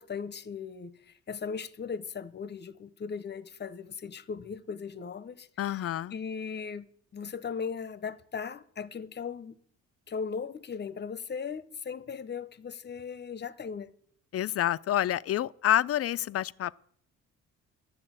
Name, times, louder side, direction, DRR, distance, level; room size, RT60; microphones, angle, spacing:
voice 1, 0.0-5.5 6.1-6.9 7.1-9.6 10.1-13.9, left 6 dB, 35° left, 0.8 m, -38 dB
voice 2, 5.6-6.1 14.3-16.7, left 12 dB, 50° left, 0.5 m, -28 dB
11.0 x 7.8 x 8.9 m
cardioid pair, 90°, 30 cm